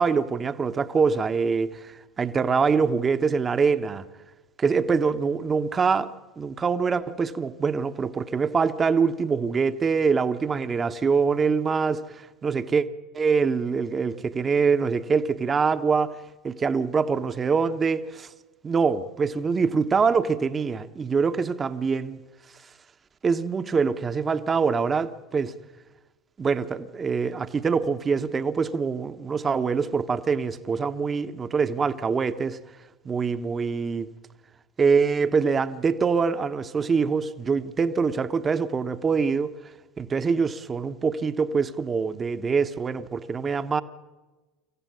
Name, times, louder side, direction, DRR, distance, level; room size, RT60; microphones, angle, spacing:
voice 1, 0.0-4.1 4.6-6.1 6.4-12.8 13.1-16.2 16.4-18.3 18.6-22.2 23.2-25.5 26.4-32.6 33.0-34.1 34.8-39.5 40.0-43.8, right 5 dB, 30° right, 1.1 m, -24 dB
25.5 x 15.0 x 9.4 m
hypercardioid pair, 75°, 0 cm